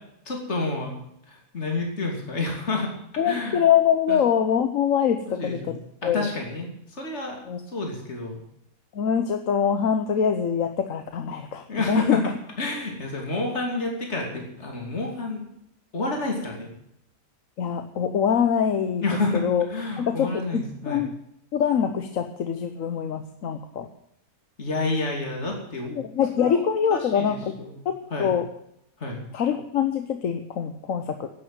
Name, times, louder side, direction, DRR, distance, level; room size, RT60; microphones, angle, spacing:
voice 1, 0.3-0.9 1.3-2.9 3.2-3.6 4.1-4.2 5.3-5.7 6.0-7.4 7.7-8.4 11.7-12.2 12.6-15.4 15.9-16.7 19.0-21.0 24.6-25.9 26.4-27.8 28.1-28.3 29.0-29.2, left 2 dB, 50° left, 0 dB, 3.1 m, -29 dB
voice 2, 3.2-6.3 7.5-7.6 8.9-12.2 17.6-19.0 19.3-19.6 20.0-21.1 21.5-23.9 26.0-27.4 27.8-28.5 29.3-31.3, left 8 dB, 65° left, 7 dB, 1.3 m, -24 dB
12.0 x 8.8 x 8.9 m, 0.76 s
omnidirectional pair, 1.5 m